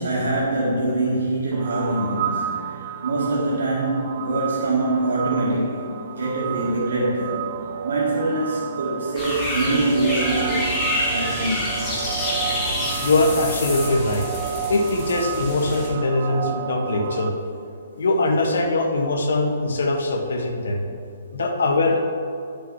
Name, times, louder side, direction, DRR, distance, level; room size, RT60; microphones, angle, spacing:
voice 1, 0.0-2.5 3.0-7.5 7.8-10.8 11.1-11.7, right 2 dB, 85° right, -5 dB, 1.9 m, -24 dB
sound 1, 1.5-17.3, right 9 dB, 30° right, 0.4 m, -31 dB
sound 2, 9.2-15.9, left 1 dB, 10° left, 1.4 m, -27 dB
voice 2, 13.0-14.3 14.7-17.3 18.0-20.8 21.3-22.2, left 2 dB, 75° left, 3 dB, 1.3 m, -22 dB
9.4 x 6.8 x 4.8 m, 2.5 s
hypercardioid pair, 175°, 0 cm